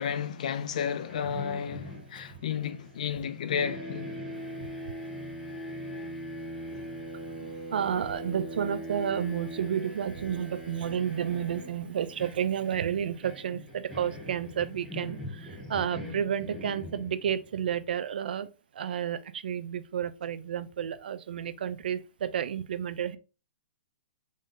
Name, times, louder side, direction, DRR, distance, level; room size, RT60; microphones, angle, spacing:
voice 1, 0.0-4.1, left 8 dB, 45° left, 0.3 m, -32 dB
sound 1, 1.1-3.3 3.5-17.5, equal, ahead, 0.7 m, -41 dB
voice 2, 7.3-18.5 18.8-23.2, right 8 dB, 65° right, 0.4 m, -31 dB
3.7 x 2.6 x 3.6 m
hypercardioid pair, 175°, 6 cm